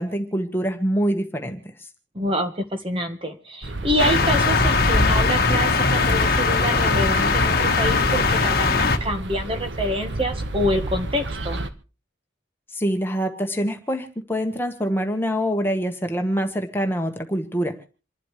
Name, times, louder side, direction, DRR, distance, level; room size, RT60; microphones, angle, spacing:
voice 1, 0.0-1.6 12.7-17.9, equal, 10° left, 4 dB, 1.4 m, -25 dB
voice 2, 2.1-11.6, equal, 30° right, 5 dB, 1.5 m, -26 dB
sound 1, 3.6-11.7, right 2 dB, 70° right, 1.3 m, -31 dB
sound 2, 4.0-9.0, left 3 dB, 50° left, 1.3 m, -20 dB
27.5 x 12.0 x 3.3 m, 0.35 s
head